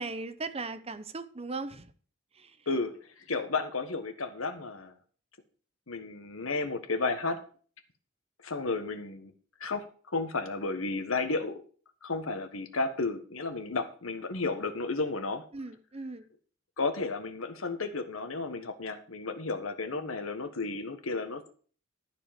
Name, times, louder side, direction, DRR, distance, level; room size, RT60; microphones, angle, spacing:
voice 1, 0.0-1.9 2.4-2.5 15.5-16.3, right 3 dB, 30° right, 0.9 m, -38 dB
voice 2, 2.7-4.9 5.9-7.4 8.4-9.3 9.6-11.6 12.0-15.4 16.8-21.5, left 3 dB, 80° left, 1.5 m, -33 dB
13.0 x 4.7 x 7.4 m
head